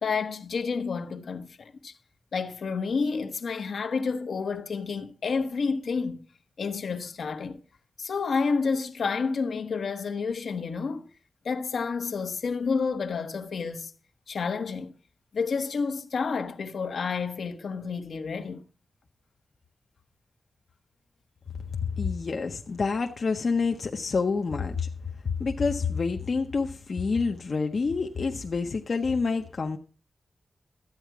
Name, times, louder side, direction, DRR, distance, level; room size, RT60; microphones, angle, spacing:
voice 1, 0.0-1.9 2.3-6.2 6.6-7.6 8.0-11.1 11.4-13.9 14.3-15.0 15.3-18.6, left 5 dB, 70° left, 1.1 m, -30 dB
voice 2, 21.8-24.9 25.2-29.8, left 4 dB, 45° left, 0.7 m, -28 dB
13.0 x 9.2 x 4.7 m
wide cardioid pair, 170°, 0 cm